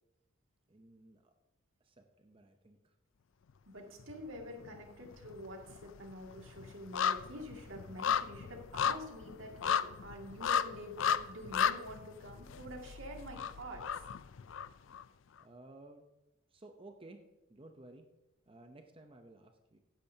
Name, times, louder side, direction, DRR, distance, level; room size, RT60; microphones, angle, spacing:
voice 1, 0.7-1.3 1.8-2.9 15.4-16.0 16.5-17.2 17.5-18.1 18.5-19.8, right 2 dB, 25° right, 5 dB, 0.7 m, -55 dB
voice 2, 3.7-13.8, equal, 75° right, 1 dB, 2.2 m, -47 dB
sound 1, 4.0-4.8 5.0-15.0 15.4-15.5, left 7 dB, 70° left, 0.4 m, -35 dB
15.5 x 10.0 x 2.8 m, 1.0 s
head